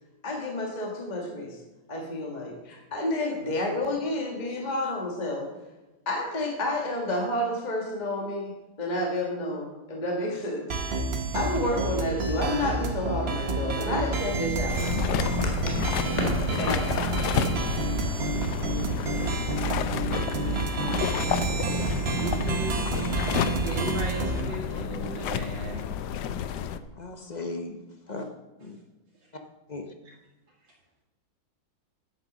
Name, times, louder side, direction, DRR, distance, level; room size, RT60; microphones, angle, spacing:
voice 1, 0.2-1.6 1.9-5.5 6.0-8.5 8.8-10.7 11.3-15.2 15.4-15.8 16.1-17.1, left 1 dB, 20° left, 0 dB, 1.6 m, -30 dB
sound 1, 10.7-24.4, right 3 dB, 40° right, 1.0 m, -29 dB
sound 2, 14.7-26.8, left 8 dB, 70° left, 1.1 m, -31 dB
voice 2, 22.1-22.9 23.2-25.8, right 3 dB, 70° right, -5 dB, 3.0 m, -36 dB
voice 3, 26.9-27.8 28.1-28.3 28.6-28.8 29.7-29.9, left 2 dB, 45° left, 5 dB, 0.5 m, -36 dB
9.7 x 9.0 x 6.2 m, 1.1 s
omnidirectional pair, 2.2 m